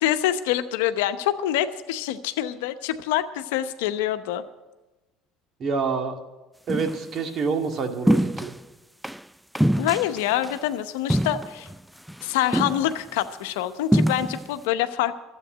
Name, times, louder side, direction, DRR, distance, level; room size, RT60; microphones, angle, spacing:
voice 1, 0.0-4.4 9.8-11.7 12.2-15.2, left 12 dB, 75° left, 11 dB, 0.8 m, -26 dB
voice 2, 5.6-6.2 6.7-8.5, right 5 dB, 45° right, 5 dB, 1.9 m, -27 dB
sound 1, 6.7-7.0 8.1-8.6 9.0-9.2 9.5-10.6 11.1-11.8 12.1-12.2 12.5-13.2 13.9-14.5, equal, 5° right, 0.3 m, -23 dB
12.5 x 8.3 x 9.8 m, 1.1 s
hypercardioid pair, 70°, 0 cm